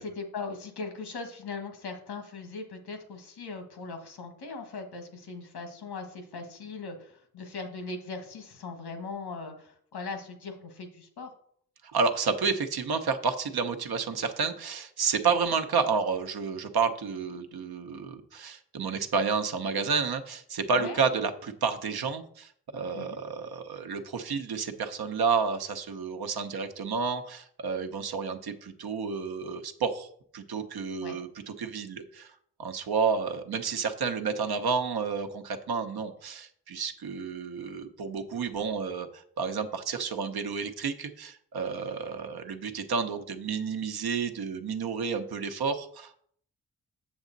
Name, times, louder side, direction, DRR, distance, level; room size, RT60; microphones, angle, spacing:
voice 1, 0.0-11.3 15.2-15.3 20.7-21.0 22.9-23.2 31.0-31.2, left 4 dB, 90° left, 5 dB, 1.5 m, -39 dB
voice 2, 11.9-32.3 32.6-46.2, right 5 dB, 75° right, 7 dB, 0.9 m, -30 dB
7.3 x 7.0 x 3.9 m, 0.62 s
cardioid pair, 65°, 38 cm